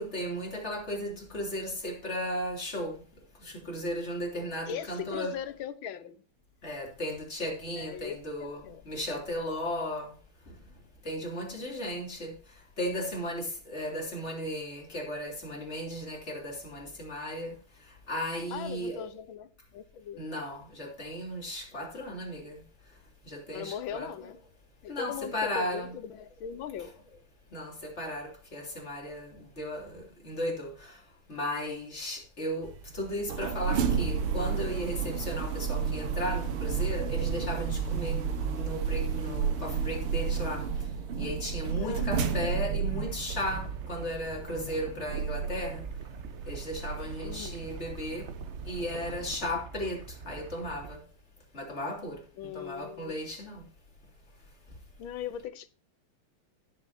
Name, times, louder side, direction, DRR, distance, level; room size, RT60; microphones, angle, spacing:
voice 1, 0.0-5.4 6.6-10.2 10.4-10.6 11.0-19.1 20.2-23.0 23.2-24.1 24.9-26.0 27.5-38.2 38.5-40.9 41.2-45.9 46.5-48.3 48.6-51.1 51.5-53.7 54.7-54.8, equal, 30° left, 3.4 m, -36 dB
voice 2, 4.7-6.2 7.8-8.8 18.5-20.2 23.5-24.4 24.8-26.9 41.8-42.1 47.2-47.7 52.4-53.1 55.0-55.7, left 8 dB, 70° left, 1.6 m, -39 dB
sound 1, 32.6-49.4, right 6 dB, 80° right, 2.1 m, -32 dB
sound 2, 42.9-51.0, right 6 dB, 55° right, 0.8 m, -45 dB
17.5 x 7.6 x 2.8 m
omnidirectional pair, 2.4 m